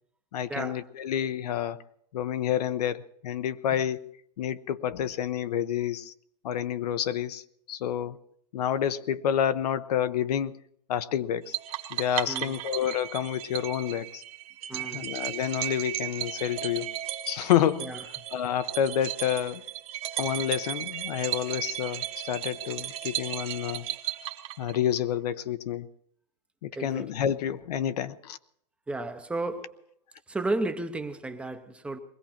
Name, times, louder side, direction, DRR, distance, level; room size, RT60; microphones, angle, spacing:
voice 1, 0.3-1.8 2.1-6.1 6.4-8.2 8.5-10.6 10.9-11.6 11.9-14.2 14.7-16.9 17.2-19.6 20.2-23.8 24.6-25.9 26.6-28.4, left 10 dB, 75° left, 0.8 m, -29 dB
sound 1, 11.5-25.0, right 14 dB, 30° right, 0.9 m, -35 dB
voice 2, 14.7-15.1 17.8-18.0 26.8-27.1 28.9-29.8 30.3-32.0, right 2 dB, 5° right, 0.6 m, -33 dB
21.0 x 15.5 x 4.4 m
supercardioid pair, 160°, 20 cm